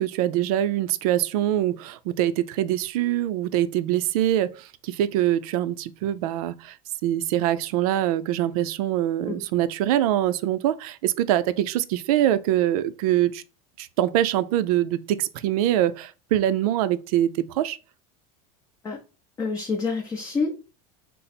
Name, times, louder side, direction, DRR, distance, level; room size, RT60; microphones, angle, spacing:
voice 1, 0.0-6.7 7.0-13.4 13.8-17.8, right 12 dB, 80° right, 0.4 m, -24 dB
voice 2, 19.4-20.6, left 4 dB, 15° left, 0.5 m, -27 dB
3.9 x 2.0 x 4.1 m
supercardioid pair, 145°, 19 cm